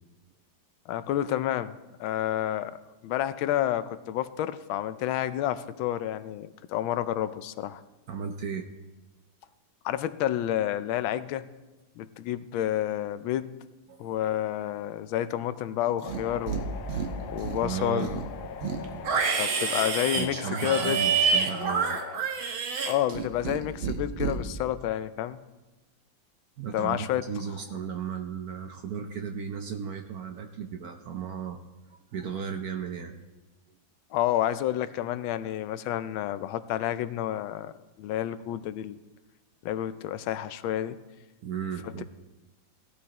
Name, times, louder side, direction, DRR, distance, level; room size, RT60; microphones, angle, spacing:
voice 1, 0.9-1.7 2.0-2.8 3.0-7.8 9.8-11.5 12.0-13.5 14.0-17.0 17.3-18.2 19.4-21.0 22.8-25.4 26.7-27.2 34.1-37.7 38.0-39.0 39.6-41.0 41.8-42.0, left 12 dB, 85° left, 13 dB, 1.4 m, -29 dB
voice 2, 8.1-8.6 13.9-14.1 17.6-18.1 18.6-18.7 20.2-22.0 26.6-31.6 31.9-33.2 41.4-42.0, right 7 dB, 60° right, 5 dB, 1.0 m, -35 dB
sound 1, 16.0-22.2, left 7 dB, 65° left, 1.1 m, -42 dB
Livestock farm animals working animals, 16.0-16.6 16.9-17.6 18.0-23.6 23.8-24.3, right 5 dB, 90° right, 2.0 m, -28 dB
17.0 x 12.0 x 2.9 m, 1.1 s
omnidirectional pair, 2.2 m